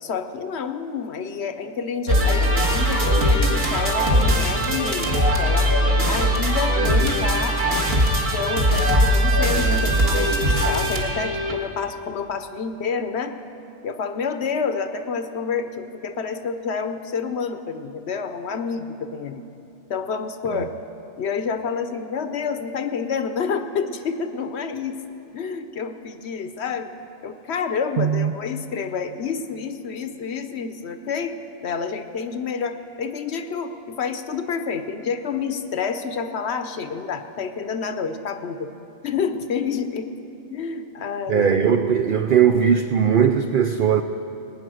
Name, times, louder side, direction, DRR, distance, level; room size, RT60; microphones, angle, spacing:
voice 1, 0.0-5.7 6.0-7.6 8.3-13.3 13.8-19.4 19.9-20.8 21.2-25.0 25.3-31.4 31.6-38.7 39.0-40.1 40.5-41.5, left 6 dB, 60° left, 9 dB, 0.9 m, -28 dB
sound 1, 2.1-11.6, equal, 45° right, 1.7 m, -20 dB
voice 2, 28.0-28.3 41.3-44.0, right 7 dB, 75° right, 7 dB, 0.4 m, -19 dB
20.0 x 9.4 x 6.3 m, 2.9 s
omnidirectional pair, 1.4 m